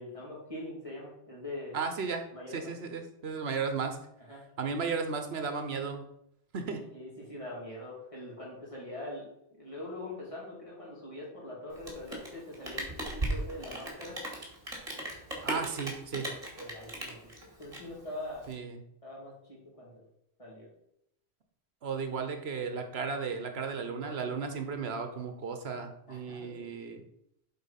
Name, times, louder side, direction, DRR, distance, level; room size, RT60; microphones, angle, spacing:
voice 1, 0.0-1.8 2.3-2.7 4.3-4.4 6.9-9.3 9.6-14.2 16.2-18.5 19.0-19.9 20.4-20.7 26.1-26.7, left 1 dB, 30° left, -5 dB, 2.9 m, -43 dB
voice 2, 1.7-4.0 4.6-6.0 6.5-6.8 15.4-16.3 18.5-18.8 21.8-27.0, right 5 dB, 70° right, 6 dB, 1.1 m, -35 dB
Rain, 11.7-18.5, right 1 dB, 35° right, 2.2 m, -37 dB
7.9 x 4.2 x 5.7 m, 0.77 s
omnidirectional pair, 1.1 m